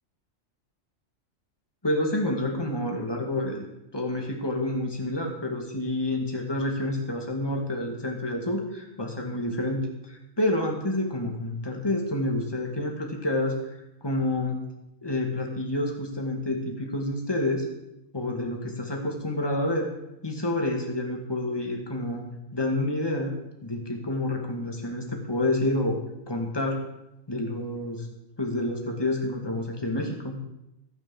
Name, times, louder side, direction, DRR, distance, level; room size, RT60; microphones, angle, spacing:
voice 1, 1.8-3.7 3.9-13.7 14.0-14.6 15.0-17.7 18.1-19.9 20.2-22.3 22.5-23.3 23.6-26.0 26.3-26.8 27.3-28.1 28.4-30.4, left 1 dB, 20° left, 1 dB, 2.2 m, -28 dB
13.0 x 8.9 x 7.1 m, 0.86 s
omnidirectional pair, 1.2 m